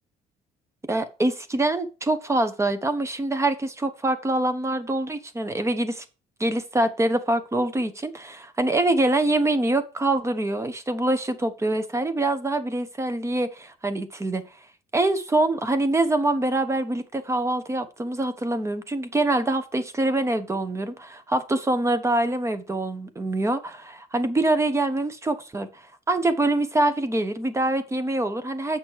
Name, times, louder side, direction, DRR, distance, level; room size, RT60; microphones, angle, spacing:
voice 1, 0.9-6.0 6.4-14.4 14.9-25.7 26.1-28.8, right 2 dB, 15° right, 1.1 m, -25 dB
8.0 x 6.1 x 4.6 m
cardioid pair, 110°, 17 cm